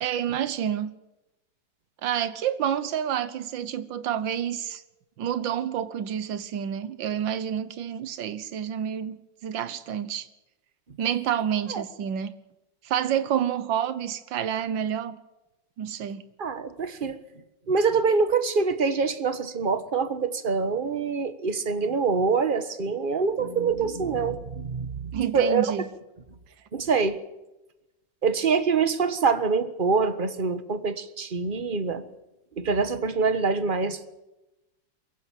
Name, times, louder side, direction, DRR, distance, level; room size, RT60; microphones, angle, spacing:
voice 1, 0.0-0.9 2.0-4.8 5.2-10.3 11.0-12.3 12.8-15.2 15.8-16.2 25.1-25.8, right 9 dB, 75° right, 1.8 m, -28 dB
voice 2, 16.4-17.2 17.7-25.7 26.7-27.2 28.2-32.1 32.6-34.1, right 5 dB, 30° right, 1.4 m, -25 dB
23.0 x 15.5 x 9.1 m
omnidirectional pair, 2.1 m